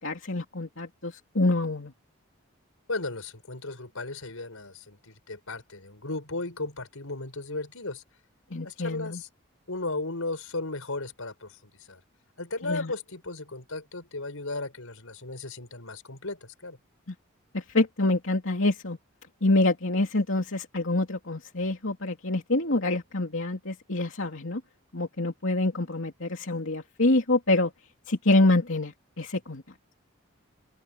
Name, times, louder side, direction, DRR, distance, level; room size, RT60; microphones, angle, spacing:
voice 1, 0.0-1.9 8.5-9.2 12.6-12.9 17.1-17.2 17.5-19.0 19.4-24.6 24.9-27.7 28.1-29.6, left 2 dB, 70° left, 2.9 m, -26 dB
voice 2, 2.9-8.0 8.6-9.3 9.7-12.0 12.4-16.8, left 2 dB, 90° left, 5.5 m, -35 dB
open air
head